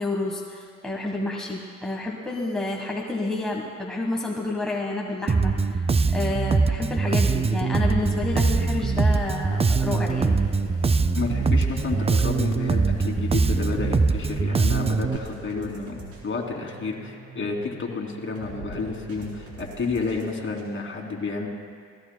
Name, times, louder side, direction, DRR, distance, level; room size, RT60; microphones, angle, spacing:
voice 1, 0.0-5.8 6.1-10.4, left 2 dB, ahead, -2 dB, 1.4 m, -29 dB
Bass guitar, 5.3-15.2, right 4 dB, 20° right, 0.4 m, -22 dB
sound 1, 8.0-14.4, left 7 dB, 85° left, 1.0 m, -41 dB
sound 2, 10.5-20.6, right 1 dB, 90° right, 4.2 m, -44 dB
voice 2, 11.1-15.9 16.2-21.5, left 4 dB, 40° left, -1 dB, 3.0 m, -30 dB
29.0 x 17.5 x 2.3 m, 2.1 s
cardioid pair, 90°, 30 cm